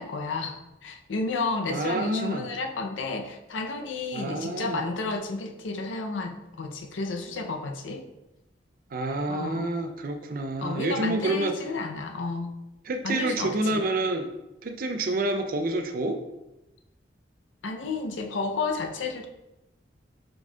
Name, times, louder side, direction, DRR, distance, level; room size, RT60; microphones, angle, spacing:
voice 1, 0.0-8.0 9.3-9.7 10.6-12.5 13.0-13.8 17.6-19.3, left 3 dB, 90° left, 4 dB, 0.5 m, -32 dB
voice 2, 1.7-2.5 4.1-4.8 8.9-11.6 12.9-14.3 14.6-16.2, right 2 dB, 50° right, 6 dB, 0.4 m, -28 dB
4.6 x 4.3 x 2.2 m, 0.93 s
head